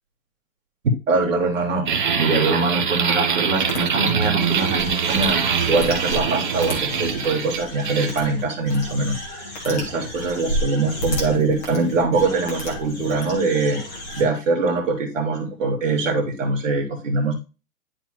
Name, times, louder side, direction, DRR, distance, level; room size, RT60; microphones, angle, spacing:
voice 1, 1.1-13.8 14.1-17.3, right 3 dB, 55° right, 2 dB, 2.6 m, -23 dB
sound 1, 1.9-8.1, right 6 dB, 30° right, 0.8 m, -23 dB
sound 2, 3.7-3.8 4.3-14.2, equal, 10° left, 0.7 m, -32 dB
10.5 x 4.1 x 3.0 m, 0.30 s
hypercardioid pair, 170°, 46 cm